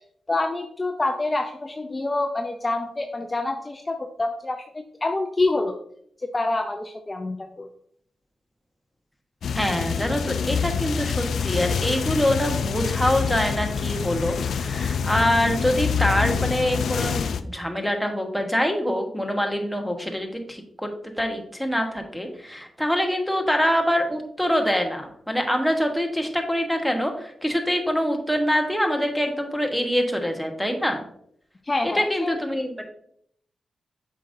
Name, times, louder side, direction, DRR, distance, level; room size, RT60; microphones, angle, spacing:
voice 1, 0.3-5.7 6.2-7.7 31.6-32.3, left 2 dB, 30° left, 4 dB, 0.5 m, -27 dB
sound 1, 9.4-17.4, left 6 dB, 80° left, 0.4 m, -26 dB
voice 2, 9.5-20.9 21.2-31.0 31.8-32.9, equal, ahead, 3 dB, 1.2 m, -25 dB
7.5 x 5.1 x 2.7 m, 0.67 s
cardioid pair, 75°, 0 cm